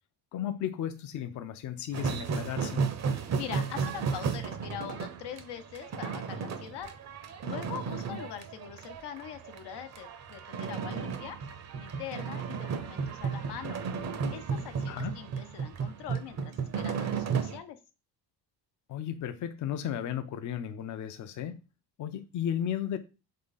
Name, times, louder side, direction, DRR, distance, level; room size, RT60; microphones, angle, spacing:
voice 1, 0.3-2.8 8.1-8.2 14.9-15.1 18.9-21.6 22.0-23.0, left 10 dB, 45° left, 0.5 m, -34 dB
sound 1, 1.9-17.6, right 6 dB, 40° right, 0.7 m, -34 dB
voice 2, 3.4-6.9 7.4-11.4 11.7-13.8 14.3-17.8, left 10 dB, 80° left, 0.8 m, -43 dB
3.8 x 3.6 x 3.9 m
cardioid pair, 140°, 41 cm